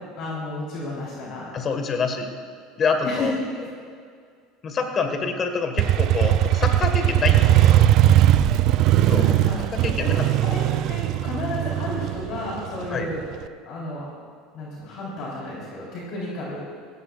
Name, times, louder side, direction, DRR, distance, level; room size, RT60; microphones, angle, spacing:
voice 1, 0.2-1.6 3.0-3.3 3.5-3.7 9.0-9.7 10.0-10.6 10.9-13.3 13.6-14.1 14.5-16.6, left 2 dB, 55° left, -5 dB, 4.0 m, -32 dB
voice 2, 1.5-2.3 2.8-3.3 4.6-7.9 9.1-9.3 9.7-10.3 12.9-13.1, left 5 dB, 35° left, 6 dB, 1.7 m, -26 dB
Motorcycle, 5.8-13.4, right 12 dB, 55° right, 0.5 m, -19 dB
17.0 x 16.0 x 2.5 m, 2.1 s
supercardioid pair, 105°, 0 cm